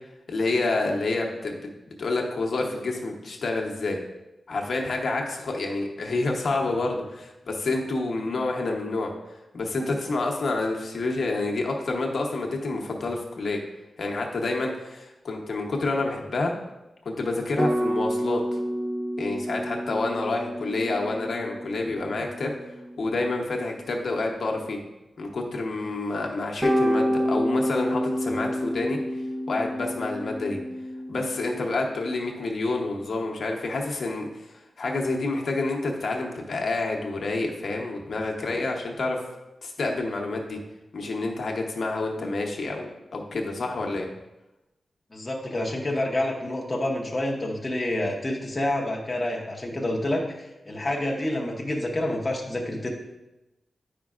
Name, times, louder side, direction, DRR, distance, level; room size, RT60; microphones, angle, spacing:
voice 1, 0.3-1.7 2.0-4.0 4.5-9.1 9.5-13.6 14.0-16.5 17.0-18.4 19.2-22.5 23.0-24.8 25.2-29.0 29.5-30.6 31.1-39.2 39.6-40.6 40.9-44.1, left 2 dB, 60° left, 0 dB, 0.9 m, -28 dB
sound 1, 17.6-24.3 26.6-31.5, equal, 15° right, 0.7 m, -29 dB
voice 2, 45.1-52.9, left 1 dB, 20° left, -1 dB, 0.8 m, -28 dB
9.2 x 5.2 x 2.4 m, 0.98 s
wide cardioid pair, 155°, 0 cm